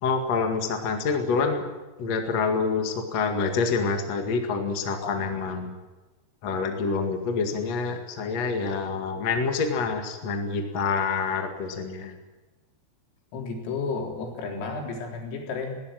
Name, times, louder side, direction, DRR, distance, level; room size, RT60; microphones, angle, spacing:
voice 1, 0.0-1.6 2.0-5.8 6.4-12.2, left 4 dB, 50° left, 4 dB, 2.1 m, -27 dB
voice 2, 13.3-15.8, left 4 dB, 85° left, 1 dB, 6.4 m, -32 dB
20.0 x 18.0 x 9.0 m, 1.2 s
omnidirectional pair, 5.8 m